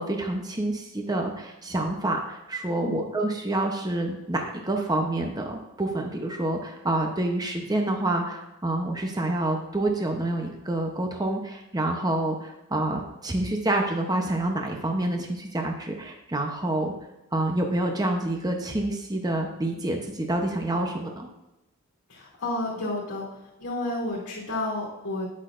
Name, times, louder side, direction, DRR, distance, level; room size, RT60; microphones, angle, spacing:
voice 1, 0.0-16.9 17.3-21.3, right 1 dB, 20° right, 2 dB, 0.8 m, -28 dB
voice 2, 2.7-3.0 22.1-23.2 23.6-25.3, left 2 dB, 60° left, -6 dB, 2.8 m, -31 dB
9.7 x 7.9 x 2.5 m, 0.95 s
head